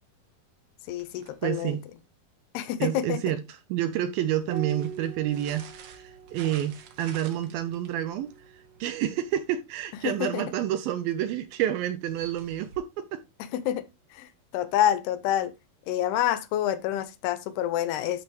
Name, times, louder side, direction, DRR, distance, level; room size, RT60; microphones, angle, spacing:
sound 1, 0.8-2.1 4.1-9.7 12.0-12.8, right 6 dB, 65° right, 2.6 m, -51 dB
voice 1, 0.9-1.8 2.5-3.2 10.0-10.5 13.5-13.8 14.1-15.5 15.9-18.2, left 11 dB, 80° left, 2.7 m, -27 dB
voice 2, 1.4-1.8 2.8-8.3 8.8-13.2, right 11 dB, 80° right, 2.2 m, -29 dB
Piano, 4.5-9.4 11.0-11.8, right 8 dB, 45° right, 2.3 m, -44 dB
11.5 x 5.0 x 3.1 m
omnidirectional pair, 4.7 m